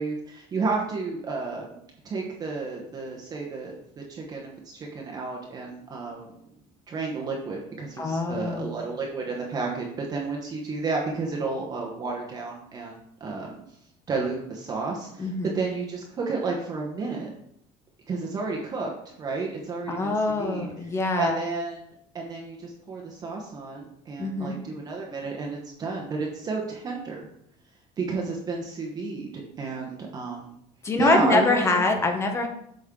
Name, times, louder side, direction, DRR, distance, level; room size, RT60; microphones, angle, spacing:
voice 1, 0.0-1.8 2.0-6.3 6.9-13.6 14.1-17.3 18.1-20.7 21.2-21.9 22.1-27.3 28.0-30.6 31.0-31.7, right 4 dB, 25° right, -1 dB, 1.0 m, -31 dB
voice 2, 8.0-8.7 15.2-15.5 19.9-21.4 24.2-24.6 30.8-32.5, left 3 dB, 20° left, 4 dB, 1.0 m, -24 dB
8.3 x 5.4 x 3.7 m, 0.74 s
cardioid pair, 170°, 15 cm